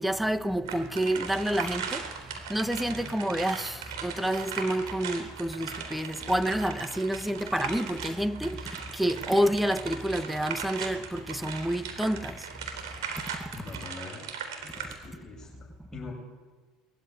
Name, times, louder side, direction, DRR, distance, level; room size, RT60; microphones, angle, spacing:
voice 1, 0.0-2.1 2.5-12.4, right 1 dB, 5° right, 1.3 m, -29 dB
sound 1, 0.7-14.9, right 6 dB, 80° right, 3.8 m, -38 dB
voice 2, 13.5-14.3 14.6-16.1, left 4 dB, 25° left, 6.8 m, -44 dB
21.0 x 15.0 x 9.7 m
hypercardioid pair, 80°, 2 cm